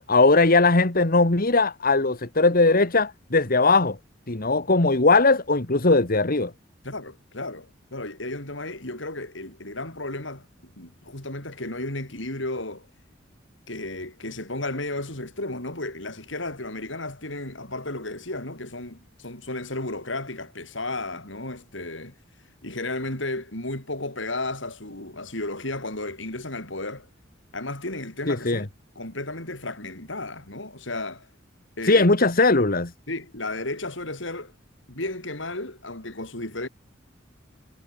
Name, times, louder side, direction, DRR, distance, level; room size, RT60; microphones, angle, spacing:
voice 1, 0.0-4.0 4.3-6.5 28.3-28.6 31.8-32.9, left 3 dB, 50° left, 1.8 m, -19 dB
voice 2, 6.8-12.9 13.7-22.1 22.6-27.1 27.5-28.7 29.0-31.3 31.8-32.1 33.1-34.5 34.9-36.7, left 2 dB, 70° left, 7.8 m, -33 dB
head